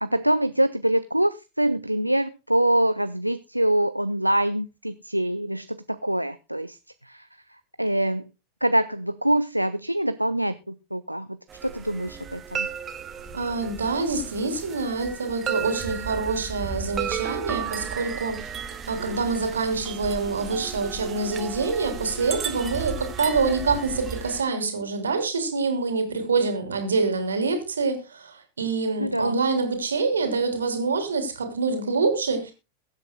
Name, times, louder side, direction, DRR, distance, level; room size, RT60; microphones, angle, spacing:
voice 1, 0.0-6.8 7.0-7.3 7.8-8.3 8.6-12.7 29.0-29.4, right 1 dB, 90° right, 12 dB, 0.5 m, -25 dB
sound 1, 11.5-24.4, right 7 dB, 25° right, 1.4 m, -34 dB
voice 2, 13.3-18.4 18.9-32.5, right 4 dB, 70° right, 7 dB, 3.1 m, -26 dB
22.0 x 8.2 x 2.2 m, 0.27 s
figure-of-eight pair, 90°, 0 cm